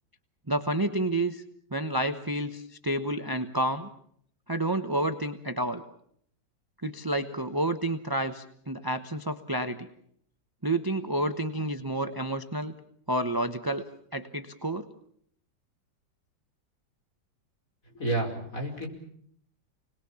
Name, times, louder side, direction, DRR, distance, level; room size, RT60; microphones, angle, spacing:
voice 1, 0.5-1.4 1.7-3.9 4.5-5.8 6.8-9.9 10.6-12.7 13.1-13.8 14.1-14.9, right 1 dB, 20° right, 9 dB, 0.7 m, -29 dB
voice 2, 17.9-18.9, right 2 dB, 40° left, 2 dB, 5.5 m, -30 dB
29.5 x 20.5 x 7.1 m, 0.65 s
omnidirectional pair, 2.1 m